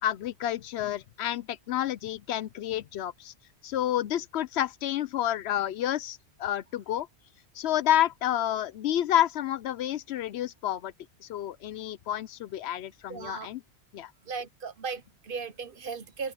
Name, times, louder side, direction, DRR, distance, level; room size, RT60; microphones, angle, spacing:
voice 1, 0.0-3.3 3.6-7.1 7.6-10.9 11.2-13.6 13.9-14.1, left 12 dB, 70° left, 0.8 m, -29 dB
voice 2, 13.1-13.5 14.2-16.3, right 5 dB, 55° right, 1.0 m, -37 dB
open air
omnidirectional pair, 1.2 m